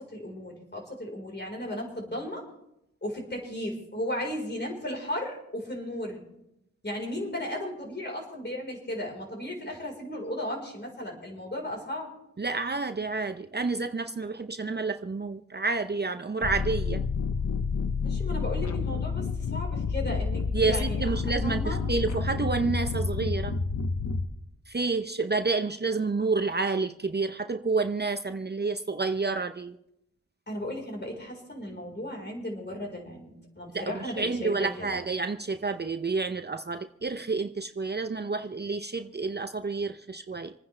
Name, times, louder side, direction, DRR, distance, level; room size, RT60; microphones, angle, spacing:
voice 1, 0.0-2.5 3.0-6.2 6.8-12.1 18.0-21.8 30.5-35.0, left 1 dB, 35° left, 0 dB, 4.3 m, -35 dB
voice 2, 12.4-17.0 20.5-23.5 24.7-29.8 33.7-40.5, right 3 dB, 35° right, 8 dB, 0.7 m, -29 dB
sound 1, 16.4-24.3, left 4 dB, 70° left, 1.0 m, -29 dB
27.5 x 9.7 x 3.3 m, 0.83 s
cardioid pair, 60°, 30 cm